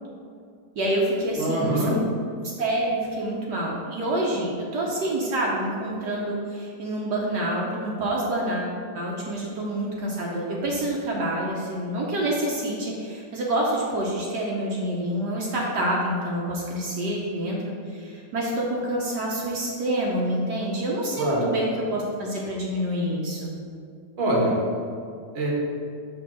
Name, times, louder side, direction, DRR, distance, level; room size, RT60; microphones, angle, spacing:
voice 1, 0.7-2.0 2.6-23.5, right 1 dB, 70° right, -4 dB, 1.4 m, -27 dB
voice 2, 1.4-1.9 21.1-21.5 24.2-24.6 25.3-25.5, right 1 dB, 40° right, -3 dB, 1.4 m, -24 dB
6.2 x 3.6 x 6.1 m, 2.4 s
omnidirectional pair, 1.9 m